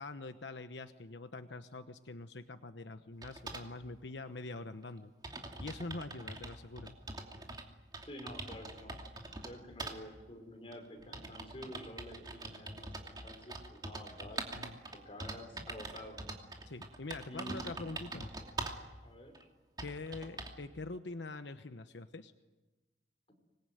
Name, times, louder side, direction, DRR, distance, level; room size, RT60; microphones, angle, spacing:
voice 1, 0.0-5.1 5.6-6.9 14.5-14.8 16.7-18.3 19.8-22.3, left 3 dB, 90° left, 9 dB, 1.1 m, -44 dB
sound 1, 3.2-3.7 4.6-4.7 4.9-5.0 5.2-7.7 7.9-9.5 9.8-10.0 10.7-18.9 19.3-19.4 19.8-20.6, right 2 dB, 25° right, 2.7 m, -44 dB
voice 2, 8.0-9.0 9.4-14.4 15.0-16.2 17.3-17.9 18.8-19.5, equal, 35° left, 4 dB, 5.4 m, -49 dB
26.0 x 21.0 x 9.3 m, 1.1 s
head